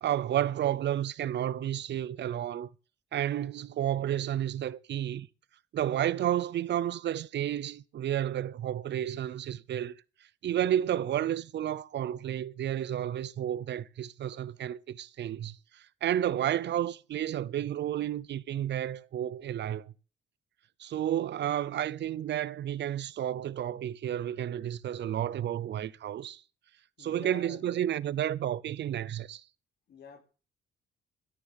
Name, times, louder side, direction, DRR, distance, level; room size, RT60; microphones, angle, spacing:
voice 1, 0.0-2.7 3.1-5.3 5.7-9.9 10.4-19.9 20.8-26.4 27.0-29.4, right 11 dB, 65° right, 0.7 m, -31 dB
voice 2, 27.0-27.8 29.9-30.2, left 5 dB, 60° left, 3.1 m, -48 dB
13.5 x 7.2 x 7.1 m
cardioid pair, 90°, 20 cm